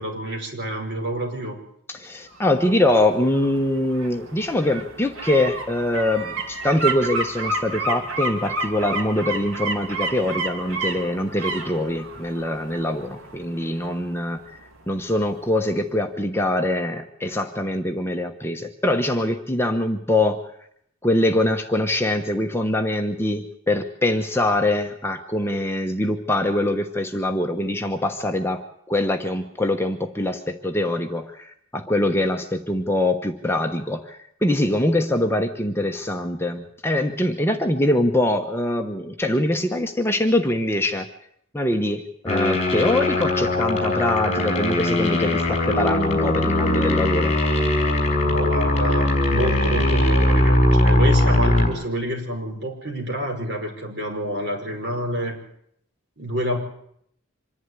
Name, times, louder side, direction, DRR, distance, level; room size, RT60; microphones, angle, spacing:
voice 1, 0.0-1.6 48.2-55.4 56.2-56.6, equal, 55° right, 1 dB, 5.2 m, -28 dB
voice 2, 1.9-14.4 14.9-20.4 21.0-41.1 41.5-47.4, left 1 dB, 10° left, 4 dB, 1.0 m, -23 dB
sound 1, 2.3-15.1 15.5-15.6, right 2 dB, 80° right, 2.8 m, -31 dB
sound 2, 42.3-51.7, left 1 dB, 30° left, 5.0 m, -20 dB
25.5 x 11.0 x 9.6 m, 0.71 s
head